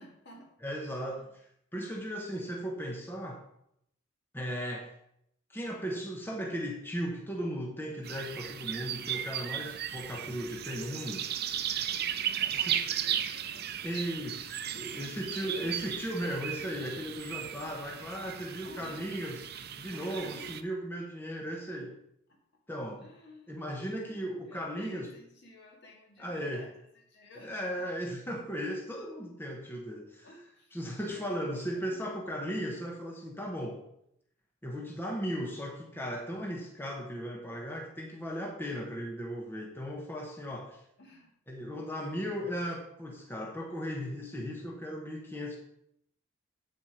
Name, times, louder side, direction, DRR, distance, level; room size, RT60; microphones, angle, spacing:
voice 1, 0.0-0.5 0.9-1.3 11.7-14.1 14.6-15.8 18.6-19.1 19.9-20.6 22.3-22.4 23.0-23.7 24.0-27.9 30.2-30.8 31.1-32.1 41.0-41.3, left 1 dB, 60° left, 0 dB, 2.3 m, -53 dB
voice 2, 0.6-1.4 1.7-3.4 4.3-4.9 5.5-11.3 12.5-12.8 13.8-22.0 22.7-23.1 23.5-25.1 26.2-26.7 27.3-30.3 30.7-33.8 34.6-40.8 41.5-45.6, equal, 10° left, 0 dB, 1.1 m, -37 dB
sound 1, 8.0-20.6, right 9 dB, 50° right, 0.6 m, -36 dB
8.4 x 7.3 x 5.0 m, 0.73 s
head